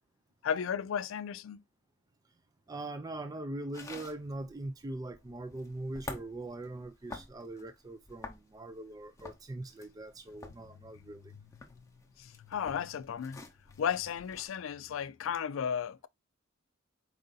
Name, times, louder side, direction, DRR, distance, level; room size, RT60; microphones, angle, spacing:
voice 1, 0.4-1.6 12.2-13.4 13.8-16.1, left 8 dB, 75° left, 0.4 m, -34 dB
voice 2, 2.7-11.3, right 2 dB, 20° right, 0.3 m, -41 dB
sound 1, 3.7-14.5, left 3 dB, 15° left, 0.7 m, -49 dB
4.7 x 2.6 x 3.8 m
head